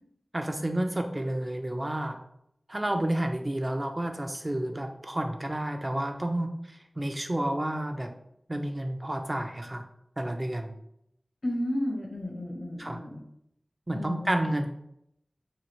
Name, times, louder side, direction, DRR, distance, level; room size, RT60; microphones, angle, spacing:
voice 1, 0.3-2.2 2.7-8.1 8.5-9.8 10.2-10.8 12.8-13.0 13.9-14.7, right 1 dB, 30° right, 5 dB, 0.6 m, -30 dB
voice 2, 11.4-13.2 13.9-14.5, left 1 dB, 70° left, -1 dB, 1.2 m, -33 dB
6.3 x 2.4 x 3.0 m, 0.75 s
wide cardioid pair, 50°, 0 cm